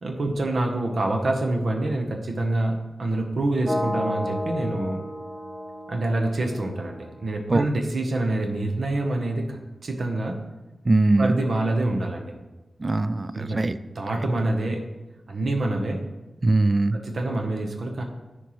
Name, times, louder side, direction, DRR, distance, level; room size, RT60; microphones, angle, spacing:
voice 1, 0.0-5.0 5.9-10.3 11.2-12.3 13.3-13.6 13.9-14.9 15.3-16.0 16.9-18.0, right 2 dB, 70° right, 2 dB, 0.9 m, -26 dB
sound 1, 3.6-7.6, left 1 dB, 10° right, 1.0 m, -32 dB
voice 2, 10.8-11.4 12.8-13.8 16.4-17.0, right 2 dB, 35° right, 14 dB, 0.3 m, -21 dB
11.0 x 4.5 x 3.1 m, 1.1 s
wide cardioid pair, 100°, 0 cm